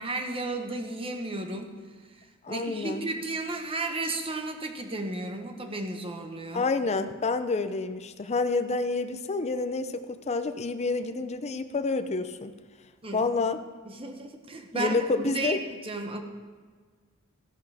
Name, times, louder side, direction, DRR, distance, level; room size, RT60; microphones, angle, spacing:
voice 1, 0.0-1.8 2.2-6.7 13.0-13.2 13.8-16.2, right 2 dB, 25° right, 5 dB, 1.0 m, -34 dB
voice 2, 2.4-3.1 6.5-12.5 13.1-13.6 14.7-15.6, left 3 dB, 30° left, 10 dB, 0.5 m, -28 dB
13.5 x 11.0 x 3.5 m, 1.5 s
head